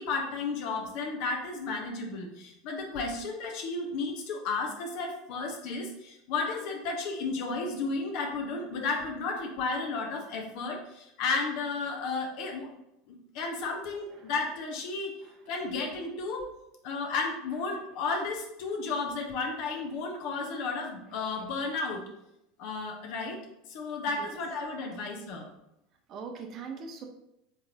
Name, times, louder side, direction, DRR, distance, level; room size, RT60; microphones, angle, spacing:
voice 1, 0.0-12.7 13.1-15.1 15.5-16.5 16.8-22.0 22.6-23.4 23.7-25.5, left 4 dB, 55° left, 1 dB, 0.9 m, -33 dB
voice 2, 26.1-27.0, right 5 dB, 40° right, 4 dB, 0.6 m, -41 dB
4.4 x 3.8 x 2.8 m, 0.84 s
figure-of-eight pair, 75°, 0 cm